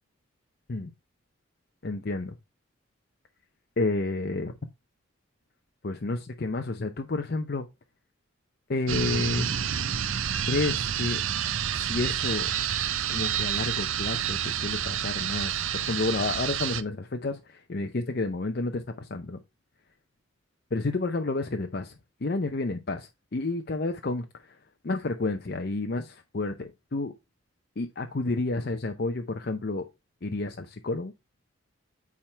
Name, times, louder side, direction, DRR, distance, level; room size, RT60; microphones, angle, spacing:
voice 1, 1.8-2.3 3.8-4.5 5.8-7.7 8.7-9.5 10.5-11.2 11.7-12.5 13.1-19.4 20.7-22.0 22.2-24.2 24.8-27.1 27.8-29.8 30.2-31.1, left 2 dB, 50° left, 0.6 m, -30 dB
sound 1, 8.9-16.8, right 9 dB, 80° right, 0.6 m, -29 dB
8.9 x 3.7 x 4.3 m
head